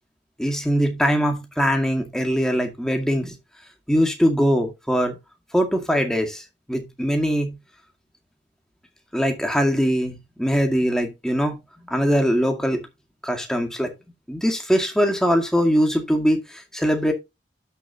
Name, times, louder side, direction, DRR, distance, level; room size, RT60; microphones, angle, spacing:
voice 1, 0.4-3.4 3.9-5.2 5.5-6.4 6.7-7.5 9.1-11.6 11.9-12.8 13.2-13.9 14.3-17.1, equal, 5° left, 2.0 m, -22 dB
12.0 x 6.8 x 2.8 m
head